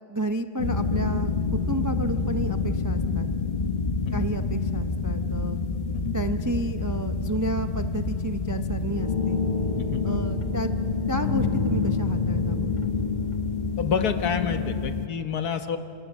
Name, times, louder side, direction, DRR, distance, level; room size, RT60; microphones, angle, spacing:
voice 1, 0.1-3.3 4.1-5.6 6.1-9.4 10.0-10.7 11.1-12.7, right 2 dB, 30° right, 8 dB, 0.3 m, -31 dB
sound 1, 0.6-15.1, left 4 dB, 30° left, 1.2 m, -27 dB
voice 2, 9.8-10.4 13.8-15.8, left 6 dB, 85° left, 8 dB, 1.7 m, -29 dB
27.5 x 26.0 x 7.3 m, 2.9 s
omnidirectional pair, 1.6 m